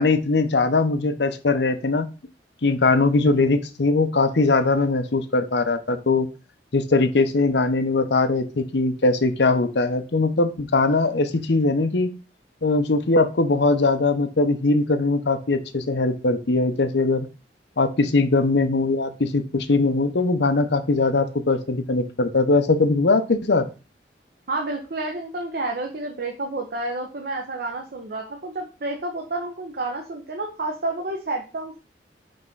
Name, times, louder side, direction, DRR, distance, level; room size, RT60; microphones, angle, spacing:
voice 1, 0.0-2.1 2.6-6.3 6.7-12.1 12.6-17.3 17.8-23.7, left 3 dB, 70° left, 9 dB, 0.8 m, -21 dB
voice 2, 24.5-31.8, right 2 dB, 55° right, 2 dB, 0.9 m, -30 dB
5.4 x 3.5 x 5.4 m, 0.32 s
head